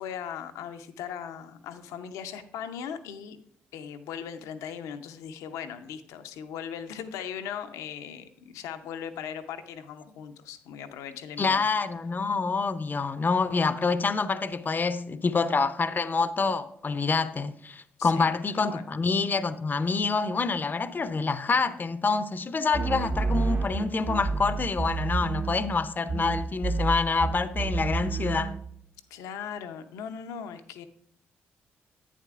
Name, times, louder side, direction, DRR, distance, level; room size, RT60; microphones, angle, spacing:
voice 1, 0.0-3.4 3.7-11.7 18.0-18.4 18.7-18.8 29.1-30.9, left 8 dB, 75° left, 0.6 m, -38 dB
voice 2, 11.4-28.6, left 4 dB, 35° left, 0.6 m, -27 dB
sound 1, 22.7-25.8 26.1-28.6, right 4 dB, 40° right, 0.8 m, -29 dB
11.0 x 8.8 x 2.4 m
hypercardioid pair, 45°, 5 cm